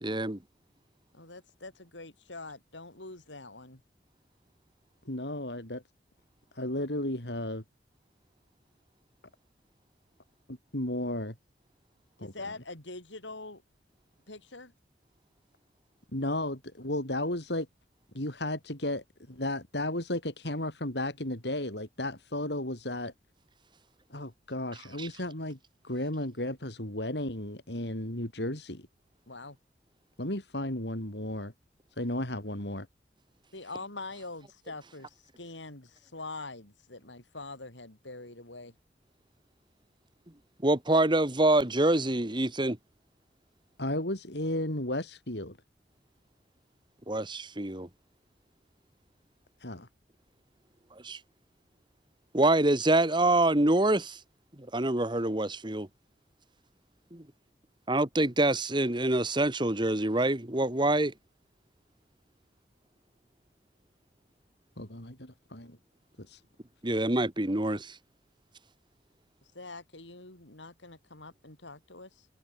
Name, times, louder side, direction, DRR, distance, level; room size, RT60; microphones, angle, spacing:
voice 1, 0.0-0.4 25.0-25.1 40.6-42.8 47.1-47.9 51.0-51.2 52.3-54.2 54.6-55.9 57.1-57.2 57.9-61.1 66.8-68.0, right 2 dB, 25° right, 1.8 m, -26 dB
voice 2, 1.1-3.8 12.2-13.6 14.3-14.7 29.3-29.6 33.5-38.7 69.5-72.3, left 3 dB, 90° left, 6.2 m, -44 dB
voice 3, 5.1-5.8 6.6-7.6 10.5-11.3 12.2-12.3 16.1-17.7 18.2-23.1 24.1-25.6 25.8-28.9 30.2-31.5 32.0-32.9 43.8-45.6 49.6-49.9 64.8-65.8 66.3-66.4, left 1 dB, 65° left, 5.1 m, -34 dB
head